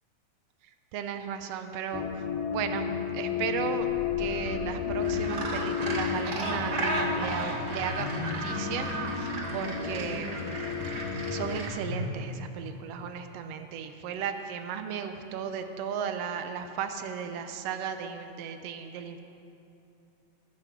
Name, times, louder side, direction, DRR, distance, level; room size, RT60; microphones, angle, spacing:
voice 1, 0.9-2.3 2.5-3.9 4.2-8.9 9.2-10.3 11.3-19.2, right 8 dB, 80° right, 7 dB, 1.4 m, -35 dB
sound 1, 1.9-11.6, left 8 dB, 80° left, 2.2 m, -33 dB
sound 2, 3.9-12.1, left 2 dB, 65° left, 2.4 m, -40 dB
Gull seagull, 5.0-11.7, right 2 dB, 50° right, 1.2 m, -34 dB
20.5 x 7.4 x 6.0 m, 2.7 s
omnidirectional pair, 3.6 m